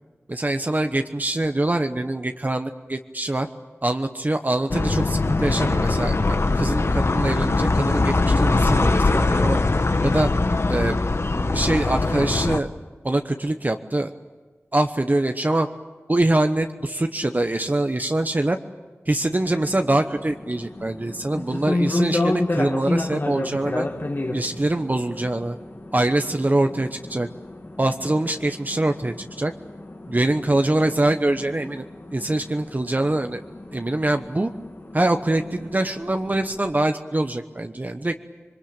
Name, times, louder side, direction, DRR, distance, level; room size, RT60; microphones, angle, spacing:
voice 1, 0.3-3.5 3.8-9.6 10.0-10.3 10.7-11.0 11.3-12.7 13.0-14.1 14.7-15.7 16.1-18.6 19.1-23.9 24.3-25.6 25.9-27.3 27.8-29.5 30.1-31.9 32.1-33.4 33.7-34.5 34.9-38.1, right 1 dB, 35° right, 6 dB, 1.1 m, -24 dB
sound 1, 4.7-12.6, left 3 dB, 65° left, 1.2 m, -21 dB
sound 2, 19.4-36.7, left 2 dB, 50° left, 2.3 m, -31 dB
26.5 x 22.5 x 8.9 m, 1.4 s
wide cardioid pair, 55°, 5 cm